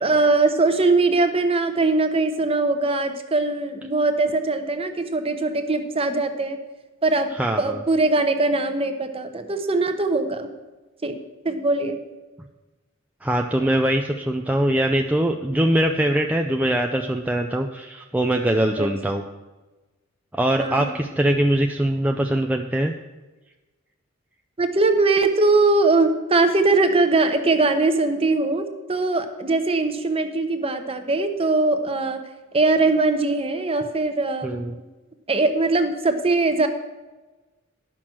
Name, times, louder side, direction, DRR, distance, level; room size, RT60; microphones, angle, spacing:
voice 1, 0.0-6.6 7.0-10.5 11.0-11.2 11.4-12.0 18.8-18.9 20.6-20.9 24.6-32.2 32.5-34.7 35.3-36.7, right 3 dB, 30° right, 8 dB, 0.9 m, -21 dB
voice 2, 7.4-7.8 13.2-19.2 20.3-22.9 34.4-34.8, right 1 dB, 5° right, 3 dB, 0.4 m, -22 dB
11.5 x 6.0 x 6.1 m, 1.2 s
head